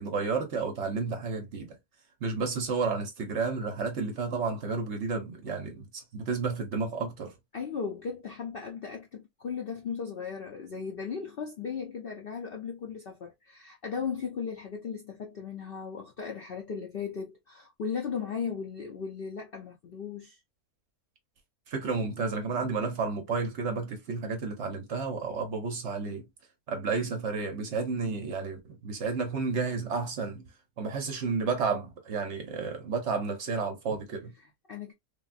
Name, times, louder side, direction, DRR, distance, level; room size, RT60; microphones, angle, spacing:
voice 1, 0.0-1.8 2.2-7.3 21.7-26.3 26.7-30.4 30.8-34.3, right 4 dB, 60° right, 0.8 m, -31 dB
voice 2, 7.5-20.4 34.4-34.9, left 6 dB, 65° left, 0.5 m, -37 dB
3.4 x 2.2 x 2.4 m
omnidirectional pair, 1.6 m